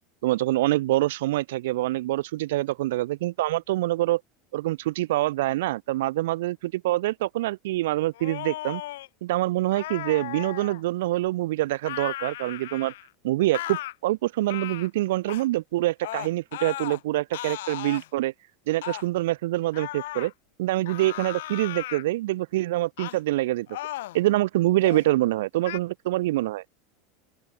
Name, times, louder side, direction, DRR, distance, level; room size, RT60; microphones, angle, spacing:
voice 1, 0.2-4.2 4.5-8.8 9.2-12.9 13.2-18.3 18.7-20.3 20.6-23.7 24.1-26.6, right 17 dB, 80° right, 0.5 m, -25 dB
sound 1, 8.1-9.1 9.7-10.8 11.8-13.1 13.5-13.9 14.5-14.9 15.3-15.5 16.0-17.0 17.3-18.1 18.8-19.1 19.7-20.3 20.9-22.0 23.0-23.2 23.7-24.2 24.7-25.1 25.6-25.8, left 16 dB, 85° left, 0.8 m, -36 dB
open air
supercardioid pair, 170°, 0 cm